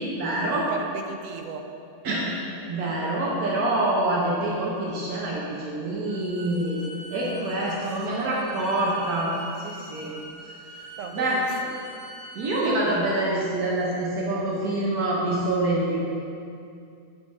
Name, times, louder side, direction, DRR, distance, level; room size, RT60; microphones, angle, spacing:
voice 1, 0.0-0.7 2.0-2.4 2.7-6.8 7.1-9.3 9.6-10.1 11.1-11.4 12.3-16.0, right 1 dB, 85° right, -5 dB, 1.4 m, -26 dB
voice 2, 0.7-1.7 11.0-11.7 12.6-13.1, right 5 dB, 70° right, 4 dB, 0.9 m, -36 dB
Bowed string instrument, 6.1-12.8, equal, 50° right, 1.7 m, -43 dB
8.9 x 3.4 x 5.3 m, 2.5 s
omnidirectional pair, 1.5 m